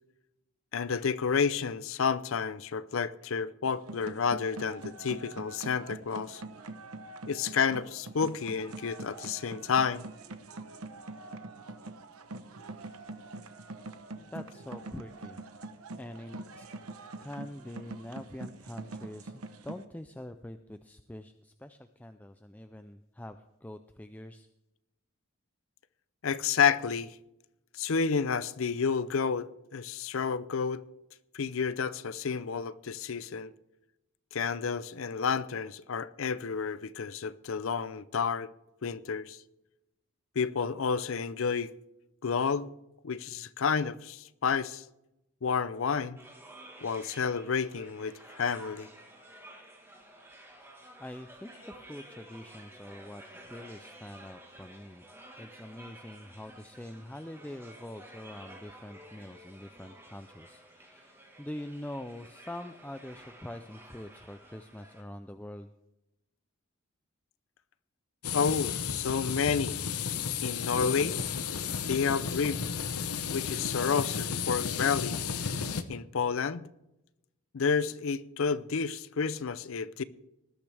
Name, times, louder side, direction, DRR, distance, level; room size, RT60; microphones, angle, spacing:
voice 1, 0.7-6.4 7.3-10.0 26.2-27.1 27.8-30.8 31.3-33.5 34.3-38.5 38.8-39.4 40.4-41.7 42.2-42.7 43.0-44.8 45.4-46.2 46.8-48.9 68.3-69.8 70.4-71.2 71.8-72.6 73.3-75.2 75.9-76.7 77.5-80.0, left 6 dB, 65° left, 0.5 m, -30 dB
sound 1, 3.7-19.8, right 2 dB, 80° right, 1.0 m, -44 dB
voice 2, 14.1-15.4 16.0-16.7 17.2-24.5 51.0-55.1 55.4-65.7, left 1 dB, 5° left, 0.4 m, -44 dB
sound 2, 46.2-65.0, right 1 dB, 10° right, 1.5 m, -52 dB
sound 3, 68.2-75.8, left 7 dB, 90° left, 0.9 m, -33 dB
19.5 x 12.0 x 3.4 m
head